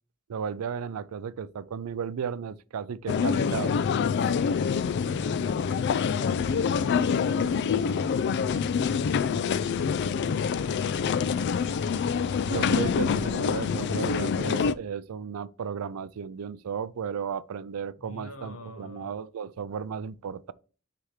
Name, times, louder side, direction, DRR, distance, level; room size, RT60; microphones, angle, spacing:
voice 1, 0.3-3.8 12.4-20.5, right 7 dB, 90° right, 0.4 m, -34 dB
sound 1, 3.1-14.7, left 6 dB, 55° left, 0.3 m, -26 dB
voice 2, 4.1-8.3 9.2-11.3 18.0-19.1, left 1 dB, 75° left, 1.3 m, -46 dB
sound 2, 6.3-13.3, equal, 5° right, 2.5 m, -46 dB
9.8 x 3.4 x 3.1 m
head